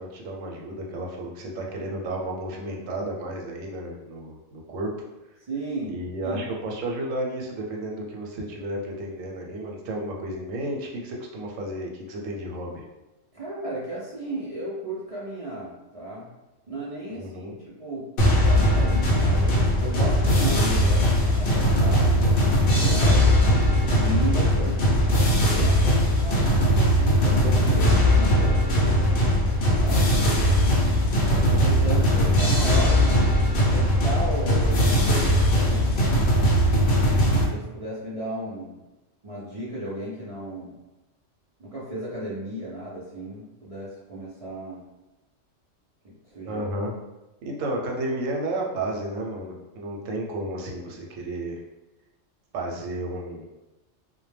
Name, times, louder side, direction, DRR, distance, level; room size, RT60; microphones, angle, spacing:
voice 1, 0.0-4.9 5.9-12.8 17.1-17.5 46.4-46.9 47.4-51.6 52.5-53.5, right 1 dB, 90° right, 0 dB, 1.0 m, -32 dB
voice 2, 5.5-6.4 13.3-16.3 16.7-18.1 18.4-24.8 25.4-29.2 29.8-36.0 37.4-38.8 39.2-40.8 41.6-44.8 46.0-46.6, right 1 dB, 55° right, -8 dB, 0.4 m, -35 dB
sound 1, 18.2-37.5, equal, 60° left, 0.7 m, -20 dB
2.1 x 2.1 x 3.2 m, 1.0 s
omnidirectional pair, 1.3 m